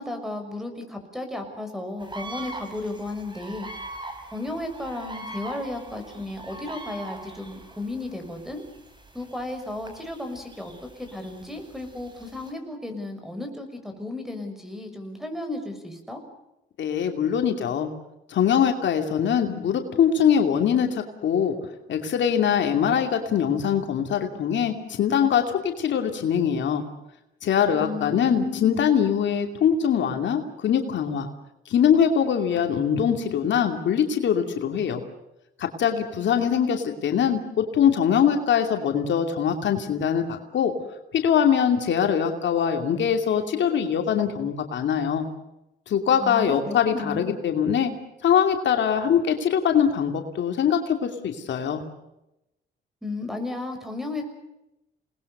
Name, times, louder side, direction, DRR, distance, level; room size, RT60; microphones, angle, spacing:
voice 1, 0.0-3.7 4.3-8.6 9.1-16.2 27.7-28.8 46.2-47.4 53.0-54.3, left 2 dB, ahead, 6 dB, 6.3 m, -34 dB
sound 1, 2.0-12.5, right 2 dB, 25° right, 5.7 m, -42 dB
voice 2, 16.8-17.9 18.3-21.5 21.9-26.8 27.4-31.3 31.7-35.0 35.6-40.7 41.1-45.2 45.9-47.9 48.2-51.8, left 8 dB, 65° left, 5 dB, 2.7 m, -22 dB
28.5 x 20.0 x 6.7 m, 0.90 s
cardioid pair, 90°, 20 cm